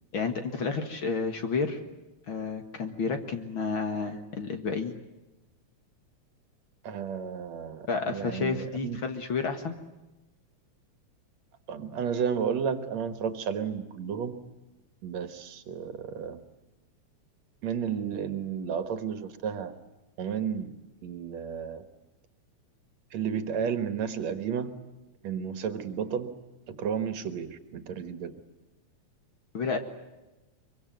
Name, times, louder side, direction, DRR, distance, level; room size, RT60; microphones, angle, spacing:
voice 1, 0.1-1.8 2.3-4.9 7.9-9.7 29.5-29.8, left 4 dB, 50° left, 7 dB, 2.2 m, -30 dB
voice 2, 6.8-9.0 11.7-14.4 15.0-16.4 17.6-19.7 20.2-20.7 21.0-21.8 23.1-24.7 25.2-26.3 26.7-28.3, right 7 dB, 70° right, 10 dB, 2.6 m, -32 dB
24.0 x 23.5 x 9.3 m, 1.0 s
omnidirectional pair, 3.3 m